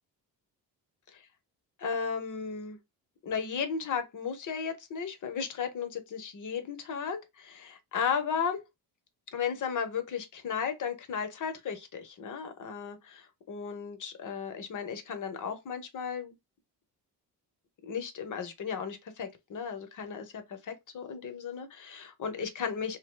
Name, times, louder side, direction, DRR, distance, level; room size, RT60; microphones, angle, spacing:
voice 1, 1.8-2.8 3.2-8.6 9.3-16.3 17.8-23.0, left 6 dB, 50° left, 0.7 m, -35 dB
2.6 x 2.0 x 3.1 m
cardioid pair, 120°, 40 cm